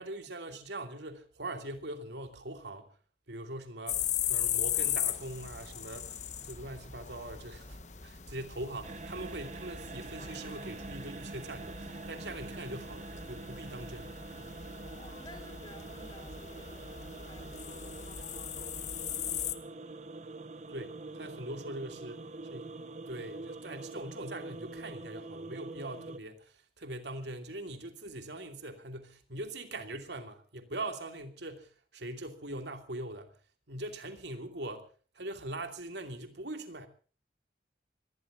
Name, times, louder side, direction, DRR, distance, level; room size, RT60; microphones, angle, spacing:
voice 1, 0.0-2.9 3.3-6.2 6.4-14.6 20.7-22.2 22.5-22.8 23.1-33.3 33.7-34.8 35.1-36.9, right 1 dB, 75° right, 2.7 m, -42 dB
sound 1, 3.9-19.5, left 10 dB, 40° left, 1.2 m, -38 dB
sound 2, 8.8-26.2, right 3 dB, 40° right, 1.0 m, -45 dB
voice 2, 14.7-18.4 19.3-20.0 20.7-20.9 21.2-21.3, left 1 dB, 25° left, 4.6 m, -55 dB
26.0 x 20.5 x 2.6 m
head